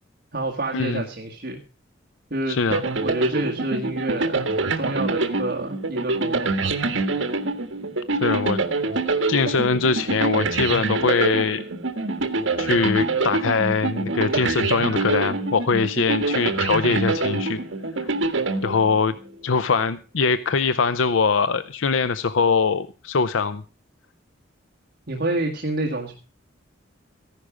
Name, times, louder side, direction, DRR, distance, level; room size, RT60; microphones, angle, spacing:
voice 1, 0.3-1.6 2.3-2.6 3.0-6.7 25.1-26.1, right 2 dB, 50° right, 0 dB, 1.8 m, -28 dB
voice 2, 2.5-2.8 8.2-8.6 9.3-11.6 12.6-17.6 18.0-18.1 18.6-19.1 19.4-23.6, left 5 dB, 75° left, 13 dB, 0.6 m, -22 dB
sound 1, 2.7-19.3, right 3 dB, 75° right, 1.5 m, -25 dB
15.0 x 11.5 x 5.0 m, 0.35 s
head